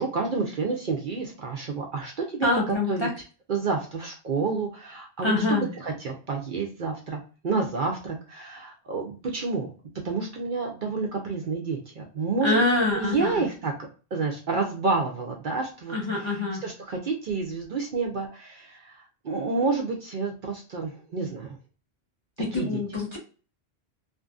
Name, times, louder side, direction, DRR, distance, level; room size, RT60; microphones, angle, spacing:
voice 1, 0.0-3.1 3.5-9.7 10.0-12.6 12.9-13.7 14.1-21.6 22.5-22.8, right 4 dB, 55° right, 1 dB, 0.6 m, -29 dB
voice 2, 2.4-3.1 5.2-5.7 12.4-13.4 15.9-16.6 22.4-23.2, left 2 dB, 30° left, -4 dB, 0.6 m, -25 dB
2.6 x 2.5 x 2.3 m, 0.36 s
omnidirectional pair, 1.1 m